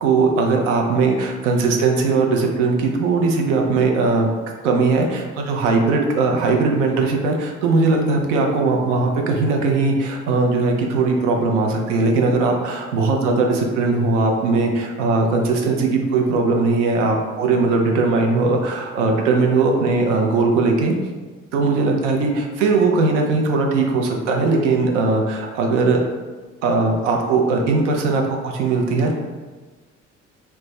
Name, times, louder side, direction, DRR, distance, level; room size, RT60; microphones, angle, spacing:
voice 1, 0.0-4.3 4.6-21.0 21.5-26.0 26.6-29.1, right 3 dB, 75° right, 2 dB, 0.5 m, -19 dB
2.4 x 2.2 x 3.0 m, 1.3 s
hypercardioid pair, 50°, 36 cm